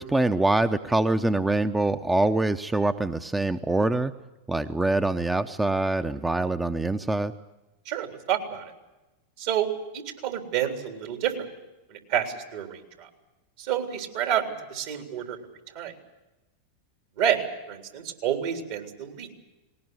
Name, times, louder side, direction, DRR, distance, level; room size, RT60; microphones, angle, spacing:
voice 1, 0.0-4.1 4.5-7.3, right 2 dB, 10° right, 9 dB, 0.8 m, -24 dB
voice 2, 7.9-8.7 9.4-11.4 11.9-13.1 13.6-15.4 15.8-15.9 17.2-19.3, right 9 dB, 60° right, 4 dB, 3.6 m, -29 dB
19.5 x 19.0 x 9.6 m, 1.0 s
hypercardioid pair, 95°, 0 cm